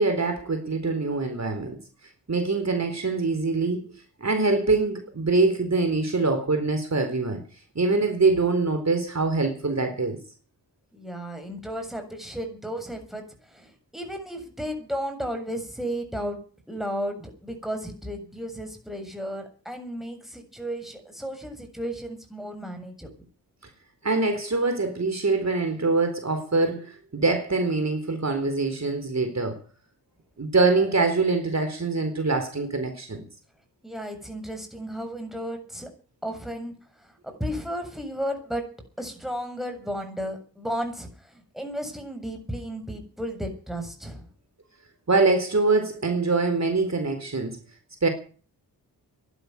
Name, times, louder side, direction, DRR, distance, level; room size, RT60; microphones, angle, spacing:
voice 1, 0.0-1.8 2.3-7.4 7.7-10.2 24.0-29.6 30.4-33.2 45.1-47.6 48.0-48.1, right 3 dB, 40° right, 4.2 m, -24 dB
voice 2, 10.9-16.4 16.7-23.1 33.8-35.9 36.2-36.7 37.2-38.7 39.0-44.3, equal, ahead, 7.2 m, -34 dB
12.5 x 11.0 x 9.5 m
supercardioid pair, 40°, 41 cm